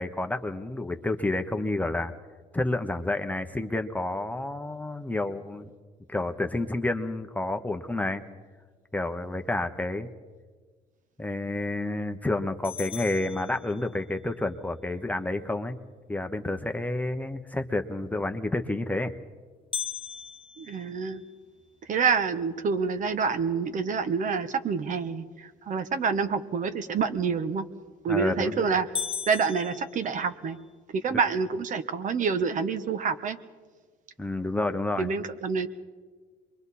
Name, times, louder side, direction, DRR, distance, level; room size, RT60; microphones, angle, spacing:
voice 1, 0.0-2.1 2.5-5.7 6.1-8.2 8.9-10.1 11.2-15.8 16.1-19.1 28.1-28.7 34.2-35.1, left 2 dB, 10° left, 7 dB, 0.9 m, -29 dB
sound 1, 12.6-14.2 19.7-21.9 22.4-22.5 23.0-23.1 23.7-24.1 27.7-28.1 28.5-28.6 29.0-30.7, left 7 dB, 30° left, 1.0 m, -38 dB
voice 2, 20.6-21.2 21.8-27.7 28.0-30.6 30.9-33.4 35.0-35.7, right 5 dB, 50° right, 10 dB, 1.2 m, -27 dB
27.0 x 23.0 x 4.2 m, 1.5 s
cardioid pair, 110°, 17 cm